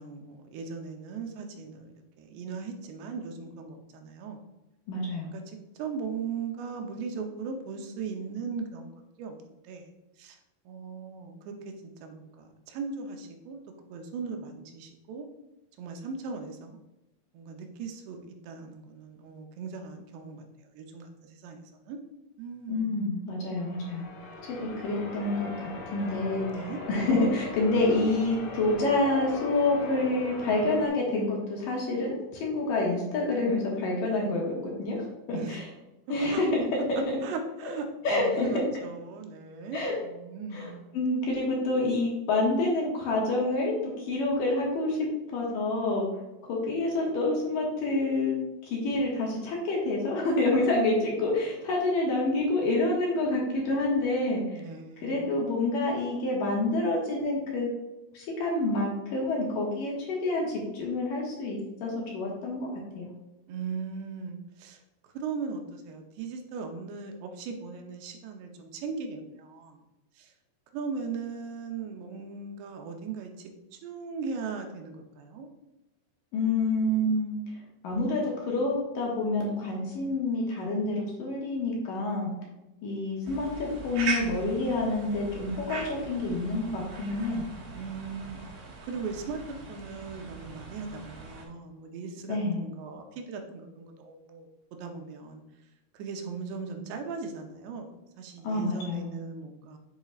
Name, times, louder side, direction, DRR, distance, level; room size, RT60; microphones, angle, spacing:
voice 1, 0.0-4.4 5.3-9.9 10.2-10.4 10.7-11.7 12.0-13.6 13.9-15.3 15.8-16.8 17.3-22.0 22.4-22.9 26.5-26.8 35.3-35.6 36.3-36.4 37.2-41.0 54.5-55.4 63.5-69.8 70.2-70.3 70.7-75.5 87.7-88.4 88.9-94.5 94.8-95.4 95.9-99.8, right 5 dB, 85° right, 4 dB, 3.0 m, -38 dB
voice 2, 4.9-5.3 22.7-24.1 24.5-26.5 26.9-35.6 36.1-37.0 38.0-38.6 39.7-39.9 40.5-46.1 46.5-54.6 55.0-57.7 58.1-62.7 63.0-63.1 76.3-77.3 77.8-82.3 82.8-87.4 92.3-92.6 98.4-99.1, left 2 dB, 65° left, -2 dB, 2.8 m, -28 dB
Church bell, 23.6-30.9, left 1 dB, 85° left, 1.4 m, -40 dB
sound 1, 83.2-91.5, right 4 dB, 60° right, 2.6 m, -39 dB
7.9 x 7.1 x 2.4 m, 0.98 s
omnidirectional pair, 4.8 m